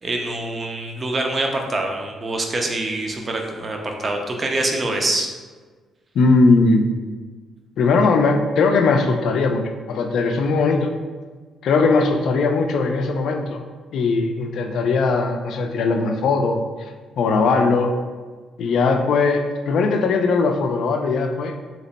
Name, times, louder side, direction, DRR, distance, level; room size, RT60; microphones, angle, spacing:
voice 1, 0.0-5.3, right 2 dB, 35° right, 2 dB, 0.5 m, -25 dB
voice 2, 6.2-6.8 7.8-10.9 11.6-13.6 13.9-16.6 17.2-18.0 18.6-21.5, left 3 dB, 70° left, 5 dB, 0.3 m, -19 dB
2.9 x 2.1 x 3.9 m, 1.4 s
cardioid pair, 90°, 0 cm